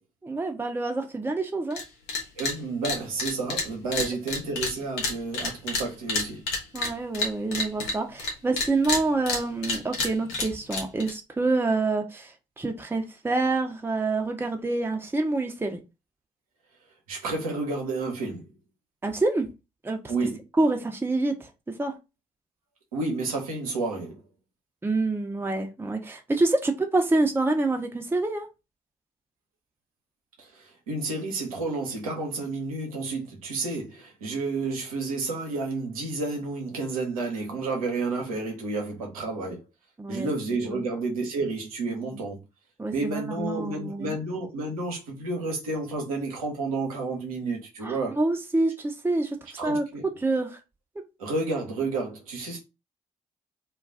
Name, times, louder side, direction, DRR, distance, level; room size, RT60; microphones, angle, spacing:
voice 1, 0.2-1.8 6.7-15.8 19.0-19.5 19.8-20.0 20.6-22.0 24.8-28.5 40.0-40.3 40.7-40.8 42.1-42.2 42.8-44.2 47.8-49.4 49.6-49.8 50.2-50.6, right 2 dB, 10° right, 0.6 m, -27 dB
sound 1, 1.7-1.8 2.1-2.5 2.8-8.3 8.6-11.1, left 3 dB, 75° left, 0.7 m, -29 dB
voice 2, 2.4-6.5 17.1-18.5 20.1-20.4 22.9-24.2 30.4-39.7 40.1-42.4 42.9-48.2 49.6-50.1 51.2-52.6, right 3 dB, 90° right, 0.7 m, -31 dB
2.3 x 2.3 x 3.3 m
hypercardioid pair, 40°, 18 cm